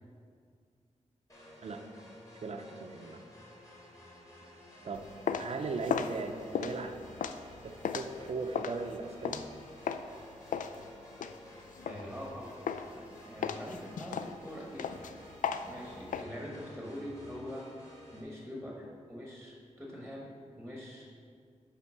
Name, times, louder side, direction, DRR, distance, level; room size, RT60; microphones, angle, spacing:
sound 1, 1.3-18.2, equal, 25° left, 1.8 m, -53 dB
voice 1, 2.4-3.2 4.8-5.1 5.4-6.9 7.6-9.5, right 4 dB, 55° right, 5 dB, 0.5 m, -38 dB
sound 2, 4.9-10.1 10.5-12.3 12.7-13.0 13.4-16.2, left 7 dB, 90° left, 0.4 m, -36 dB
voice 2, 11.9-12.6 12.9-15.1 15.6-17.7 18.1-20.3 20.6-21.1, equal, ahead, -2 dB, 1.1 m, -44 dB
9.7 x 3.4 x 6.1 m, 2.2 s
wide cardioid pair, 145°, 13 cm